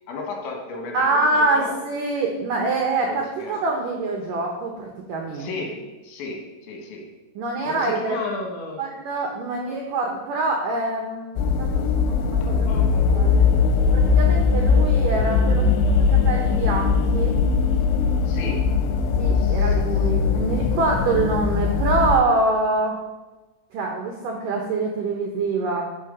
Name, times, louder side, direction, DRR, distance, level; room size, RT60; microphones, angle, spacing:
voice 1, 0.1-1.7 3.1-3.6 5.3-7.0 7.6-8.8 12.5-13.1 18.3-18.7 19.3-19.8, left 3 dB, 70° left, 1 dB, 3.9 m, -34 dB
voice 2, 0.9-5.5 7.4-8.2 8.8-12.9 13.1-13.5 13.9-15.8 16.1-17.4 19.2-23.0 23.7-25.8, right 3 dB, 80° right, 1 dB, 1.9 m, -25 dB
sound 1, 11.4-22.2, left 5 dB, 90° left, 3.2 m, -20 dB
12.5 x 5.7 x 5.4 m, 1.1 s
omnidirectional pair, 5.5 m